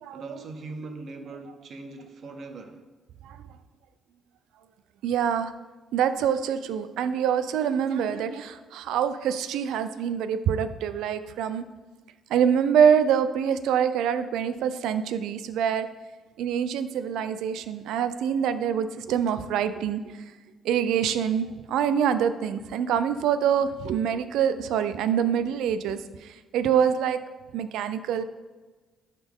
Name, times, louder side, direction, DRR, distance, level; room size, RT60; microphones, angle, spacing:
voice 1, 0.1-2.8, right 3 dB, 60° right, 6 dB, 0.9 m, -40 dB
voice 2, 5.0-5.5 5.9-11.7 12.3-15.9 16.4-20.2 20.6-27.2 27.5-28.2, right 8 dB, 85° right, 12 dB, 0.5 m, -25 dB
11.5 x 4.1 x 3.7 m, 1.3 s
cardioid pair, 90°, 0 cm